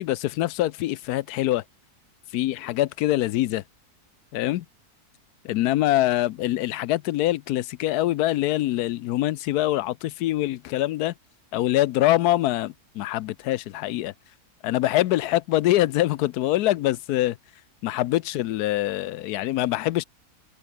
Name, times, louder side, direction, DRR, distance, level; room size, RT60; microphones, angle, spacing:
voice 1, 0.0-1.6 2.3-3.6 4.3-4.6 5.4-11.1 11.5-14.1 14.6-17.4 17.8-20.0, left 15 dB, 85° left, 1.1 m, -24 dB
omnidirectional pair, 1.6 m